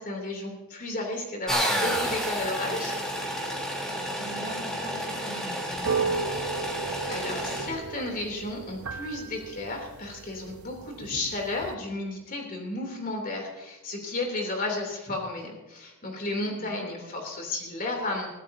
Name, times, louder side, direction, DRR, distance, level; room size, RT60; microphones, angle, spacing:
voice 1, 0.0-3.0 6.7-18.3, left 2 dB, 40° left, 2 dB, 3.2 m, -33 dB
sound 1, 1.5-7.7, equal, 5° left, 3.5 m, -30 dB
voice 2, 3.9-6.2 16.5-17.1, right 1 dB, 45° right, -1 dB, 3.1 m, -43 dB
sound 2, 5.7-11.7, right 5 dB, 85° right, 0.9 m, -34 dB
22.0 x 14.5 x 2.8 m, 1.1 s
head